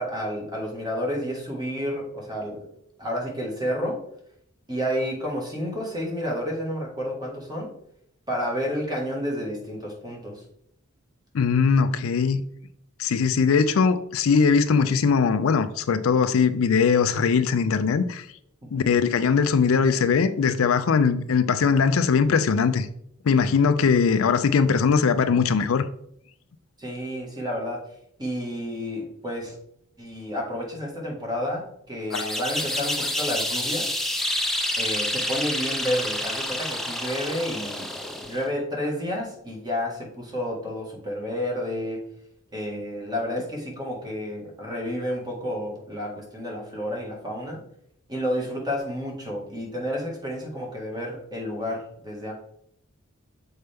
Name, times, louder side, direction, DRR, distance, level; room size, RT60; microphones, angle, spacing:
voice 1, 0.0-2.7 3.0-4.0 4.7-7.7 8.3-10.4 18.6-18.9 26.8-27.8 28.2-29.5 30.0-34.0 34.8-42.0 42.5-47.6 48.1-52.3, equal, 20° right, 1.7 m, -30 dB
voice 2, 11.3-12.4 13.0-18.3 18.7-22.9 23.2-25.9 32.1-32.4, left 5 dB, 80° left, 0.4 m, -21 dB
sound 1, 32.1-38.5, left 1 dB, ahead, 0.5 m, -28 dB
6.7 x 4.4 x 3.4 m
head